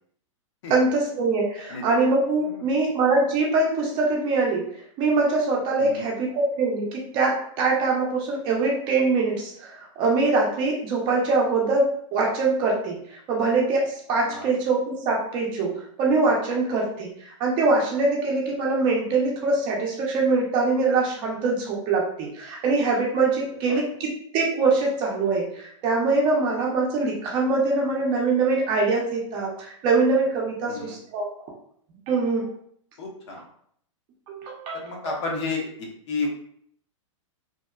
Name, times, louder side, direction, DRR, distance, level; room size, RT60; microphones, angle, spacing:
voice 1, 0.7-4.7 5.0-31.3 32.1-32.5 34.3-35.1, right 3 dB, 30° right, -2 dB, 0.6 m, -23 dB
voice 2, 33.0-33.4 34.7-35.6 36.1-36.3, left 3 dB, 55° left, 0 dB, 0.7 m, -30 dB
2.7 x 2.1 x 2.3 m, 0.65 s
hypercardioid pair, 150°, 17 cm